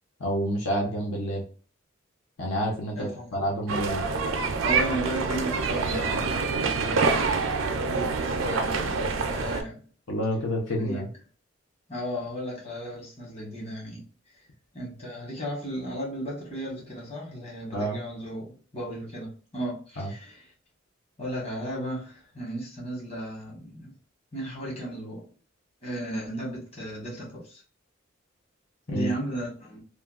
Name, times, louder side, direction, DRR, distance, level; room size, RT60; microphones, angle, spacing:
voice 1, 0.2-1.4 2.4-4.0 10.1-11.1 17.7-18.0 20.0-20.1 28.9-29.1, equal, 75° left, 0.7 m, -28 dB
voice 2, 2.9-3.4 4.6-9.8 10.8-11.0 11.9-14.0 14.7-20.5 21.2-23.9 24.3-25.2 25.8-27.6 28.9-29.8, right 1 dB, 30° left, 1.2 m, -35 dB
sound 1, 3.7-9.6, right 4 dB, 85° right, 0.5 m, -26 dB
3.1 x 2.2 x 2.3 m
head